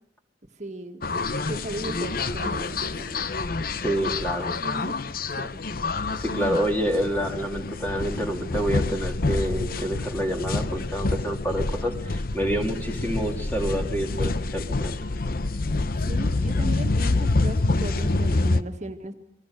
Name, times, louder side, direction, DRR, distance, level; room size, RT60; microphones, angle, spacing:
voice 1, 0.6-1.1 1.5-3.3 4.6-5.0 5.4-5.6 6.4-6.5 16.1-19.1, right 1 dB, 45° right, 5 dB, 1.8 m, -36 dB
sound 1, 1.0-18.6, left 3 dB, 55° left, 0.9 m, -27 dB
voice 2, 3.8-4.5 6.1-15.0, equal, 10° left, 3 dB, 3.0 m, -28 dB
29.0 x 20.5 x 6.7 m, 0.73 s
head